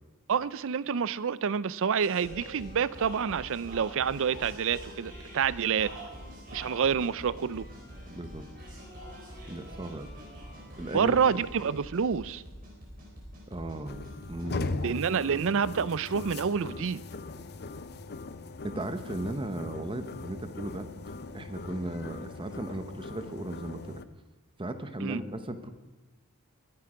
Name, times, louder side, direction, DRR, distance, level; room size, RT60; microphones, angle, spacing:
voice 1, 0.3-5.9 6.5-7.6 10.9-12.4 14.8-17.0 25.0-25.2, right 6 dB, 60° right, 19 dB, 0.5 m, -28 dB
sound 1, 2.0-14.5, equal, 40° right, 4.7 m, -45 dB
voice 2, 8.1-8.4 9.5-10.1 10.8-11.2 13.5-15.0 18.6-24.0 24.6-25.7, right 1 dB, 25° right, 9 dB, 0.9 m, -36 dB
sound 2, 13.8-24.0, left 3 dB, 45° left, 0.6 m, -40 dB
22.0 x 10.5 x 5.0 m, 1.2 s
head